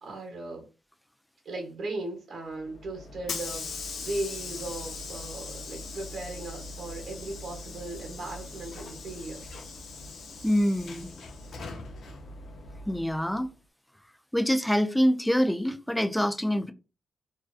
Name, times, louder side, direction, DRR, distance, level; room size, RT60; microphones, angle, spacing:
voice 1, 0.0-0.6 1.4-9.4, right 2 dB, 60° right, 0.9 m, -37 dB
Hiss / Sliding door, 2.6-13.4, left 3 dB, 65° left, 0.5 m, -40 dB
voice 2, 10.4-11.1 12.9-13.5 14.3-16.7, equal, 5° left, 0.4 m, -25 dB
2.4 x 2.3 x 2.3 m
cardioid pair, 75°, 0 cm